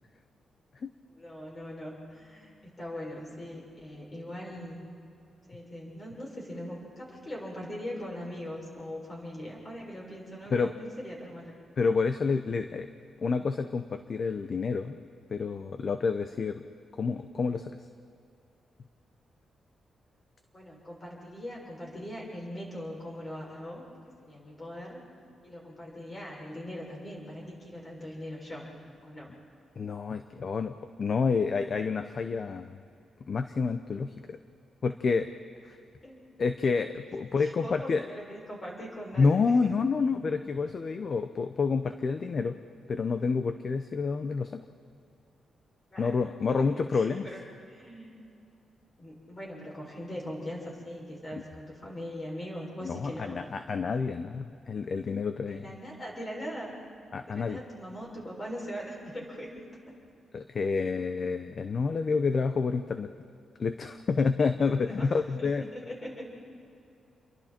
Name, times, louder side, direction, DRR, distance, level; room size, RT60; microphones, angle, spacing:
voice 1, 1.1-4.8 5.5-11.5 20.5-23.8 24.3-25.0 25.4-28.6 29.0-29.3 36.0-36.3 37.4-39.7 45.9-46.2 46.5-48.2 49.0-53.4 55.4-56.8 57.3-59.6 60.8-61.0 64.8-65.1 65.4-66.3, equal, 25° left, -3 dB, 6.6 m, -41 dB
voice 2, 11.8-12.9 13.2-15.0 15.3-16.6 17.0-17.7 29.8-32.8 33.3-34.4 34.8-35.3 35.6-35.8 36.4-38.1 39.2-42.6 42.9-44.6 46.0-47.3 52.8-55.8 57.1-57.6 60.3-63.1 63.6-65.6, left 4 dB, 40° left, 9 dB, 0.7 m, -28 dB
29.5 x 23.0 x 4.5 m, 2.5 s
wide cardioid pair, 135°, 0 cm